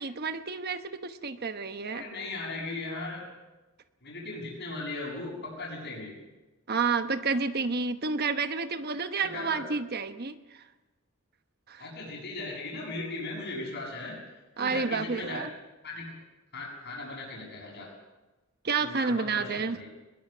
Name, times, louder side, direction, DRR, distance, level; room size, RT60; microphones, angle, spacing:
voice 1, 0.0-2.0 6.7-10.4 11.7-11.9 14.6-15.5 18.6-19.8, right 4 dB, 45° right, 10 dB, 1.1 m, -30 dB
voice 2, 1.9-3.2 4.0-6.2 9.2-9.6 11.8-14.2 14.6-15.4 15.8-16.1 16.5-17.9 18.8-19.9, left 2 dB, 55° left, -8 dB, 7.3 m, -38 dB
21.5 x 21.0 x 6.8 m, 1.1 s
head